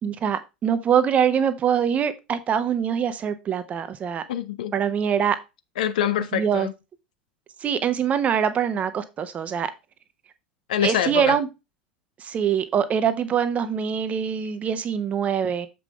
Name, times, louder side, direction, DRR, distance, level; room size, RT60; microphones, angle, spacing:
voice 1, 0.0-4.2 4.7-5.4 6.3-6.7 7.6-9.7 10.8-11.5 12.2-15.7, right 8 dB, 30° right, 1.1 m, -23 dB
voice 2, 4.3-4.7 5.8-6.7 10.7-11.4, left 9 dB, 60° left, 0.7 m, -25 dB
7.3 x 5.5 x 3.3 m
figure-of-eight pair, 80°, 5 cm